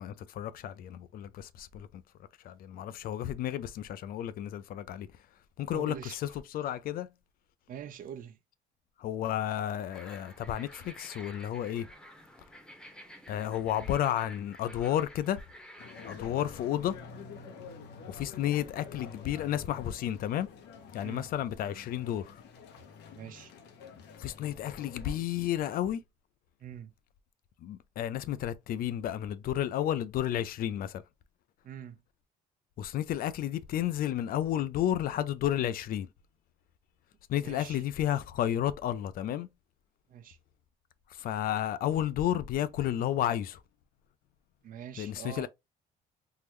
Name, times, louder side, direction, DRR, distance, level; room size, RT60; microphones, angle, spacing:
voice 1, 0.0-2.0 2.4-5.1 5.6-7.1 9.0-11.9 13.3-15.4 16.0-17.0 18.1-20.5 20.9-22.3 24.2-26.0 27.6-31.0 32.8-36.1 37.3-39.5 41.1-43.6 45.0-45.5, left 11 dB, 60° left, 0.4 m, -32 dB
voice 2, 5.7-6.2 7.7-8.4 21.0-21.3 23.1-23.5 26.6-26.9 31.6-32.0 37.4-37.8 40.1-40.4 44.6-45.5, right 9 dB, 55° right, 0.7 m, -44 dB
sound 1, 9.9-16.3, equal, 5° left, 0.9 m, -51 dB
sound 2, 15.8-25.1, left 5 dB, 80° left, 0.9 m, -48 dB
3.7 x 2.0 x 3.0 m
cardioid pair, 110°, 17 cm